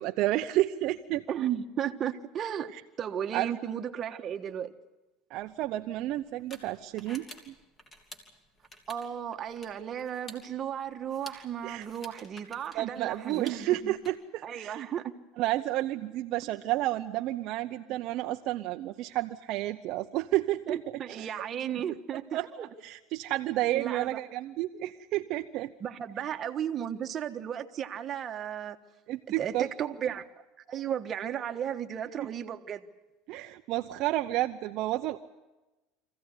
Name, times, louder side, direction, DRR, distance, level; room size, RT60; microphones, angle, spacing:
voice 1, 0.0-1.2 2.7-2.8 3.3-3.5 5.3-7.5 11.6-11.9 12.7-14.9 15.4-20.8 21.1-21.3 22.3-25.7 29.1-29.7 32.2-32.3 33.3-35.2, right 15 dB, 60° right, 0.7 m, -31 dB
voice 2, 1.3-2.7 3.0-4.7 8.9-14.0 14.4-15.1 20.7-22.7 23.7-24.2 25.8-28.8 29.4-30.3 30.7-32.8, right 9 dB, 35° right, 1.3 m, -34 dB
sound 1, 5.4-14.1, left 1 dB, 20° left, 3.1 m, -52 dB
24.5 x 15.5 x 9.7 m
supercardioid pair, 125°, 0 cm